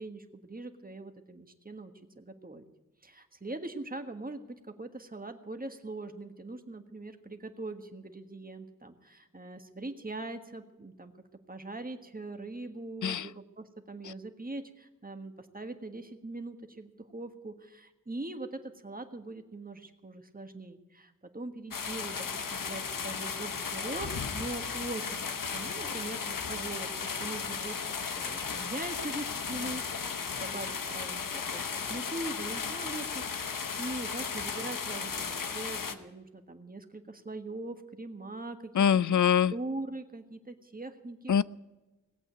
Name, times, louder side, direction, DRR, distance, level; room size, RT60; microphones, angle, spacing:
voice 1, 0.0-2.6 3.0-11.1 11.5-33.4 33.8-38.8 39.5-41.3, right 2 dB, 25° right, 6 dB, 1.5 m, -41 dB
sound 1, 21.7-35.9, left 5 dB, 85° left, 1.0 m, -35 dB
voice 2, 38.7-39.5 41.3-41.4, left 8 dB, 70° left, 20 dB, 0.5 m, -24 dB
18.0 x 8.3 x 9.4 m, 1.2 s
wide cardioid pair, 65°, 32 cm